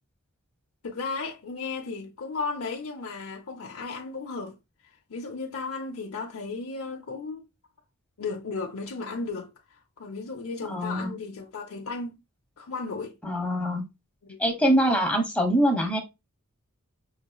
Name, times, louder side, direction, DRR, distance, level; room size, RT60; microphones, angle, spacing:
voice 1, 0.8-4.6 5.1-7.5 8.2-9.5 10.0-12.2 12.6-13.2 14.2-14.4, left 4 dB, 75° left, 0.7 m, -34 dB
voice 2, 10.7-11.1 13.2-13.8 14.4-16.0, equal, 5° left, 1.1 m, -24 dB
5.6 x 3.0 x 2.2 m
head